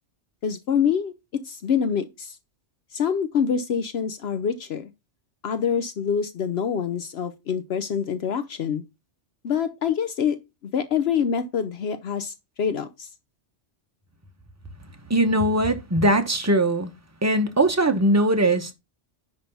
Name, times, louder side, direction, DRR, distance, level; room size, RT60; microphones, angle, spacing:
voice 1, 0.4-1.2 1.4-2.4 2.9-4.9 5.4-8.8 9.4-10.4 10.6-13.1, left 7 dB, 65° left, 0.9 m, -26 dB
voice 2, 15.1-16.9 17.2-18.7, right 1 dB, 15° right, 1.0 m, -20 dB
10.0 x 3.4 x 5.4 m
omnidirectional pair, 1.2 m